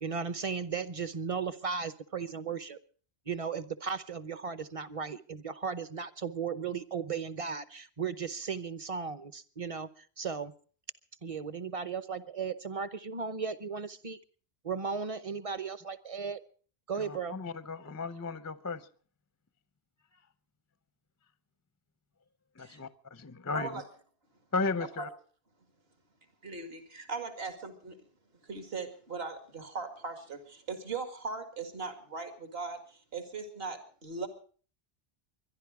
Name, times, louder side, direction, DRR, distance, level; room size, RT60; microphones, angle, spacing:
voice 1, 0.0-2.8 3.3-10.5 11.2-14.2 14.6-16.4 16.9-17.3, right 6 dB, 35° right, 14 dB, 0.8 m, -36 dB
voice 2, 16.9-18.9 22.6-23.8 24.5-25.1, left 4 dB, 20° left, 14 dB, 0.5 m, -35 dB
voice 3, 26.4-28.0 28.4-34.3, right 4 dB, 70° right, 7 dB, 2.2 m, -39 dB
24.0 x 11.0 x 4.8 m, 0.43 s
omnidirectional pair, 1.1 m